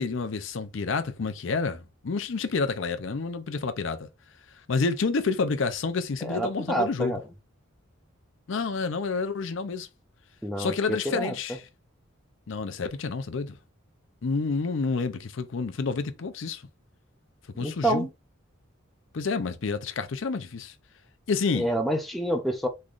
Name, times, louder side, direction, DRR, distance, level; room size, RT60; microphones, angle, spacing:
voice 1, 0.0-4.1 4.7-7.2 8.5-9.9 10.6-11.6 12.5-13.6 14.2-16.6 17.6-18.1 19.1-20.7 21.3-21.7, left 4 dB, 65° left, 0.5 m, -29 dB
voice 2, 6.2-7.2 10.4-11.4 17.6-18.1 21.5-22.7, right 1 dB, ahead, 0.5 m, -28 dB
3.7 x 3.1 x 2.4 m
head